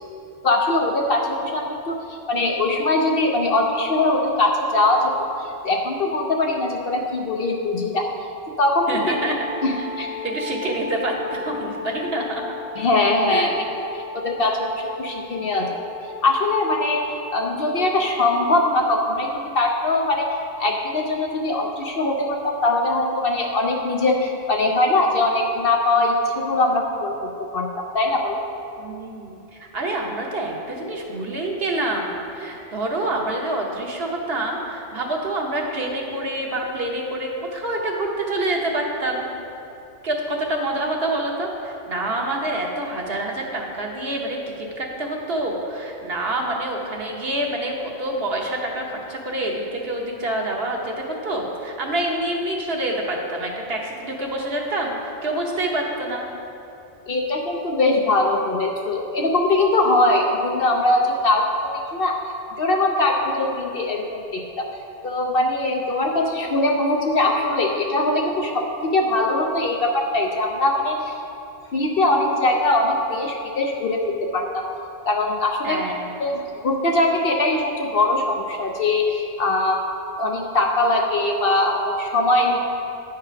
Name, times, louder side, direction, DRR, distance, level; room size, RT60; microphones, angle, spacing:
voice 1, 0.4-5.3 5.6-8.1 8.6-9.0 9.6-10.1 12.8-13.6 13.9-15.7 16.2-28.4 57.1-61.4 61.9-62.2 62.6-64.7 65.0-71.1 71.7-74.6 75.1-75.8 76.2-79.8 80.2-82.6, left 2 dB, 55° left, 1 dB, 0.7 m, -21 dB
Wind instrument woodwind instrument, 8.9-18.9, left 3 dB, 35° left, 1.1 m, -35 dB
voice 2, 8.9-9.4 9.8-9.9 10.2-12.4 13.3-13.5 28.8-39.3 40.0-56.2 75.6-76.0, right 1 dB, 55° right, 0 dB, 1.2 m, -27 dB
9.3 x 5.0 x 5.7 m, 2.8 s
omnidirectional pair, 1.3 m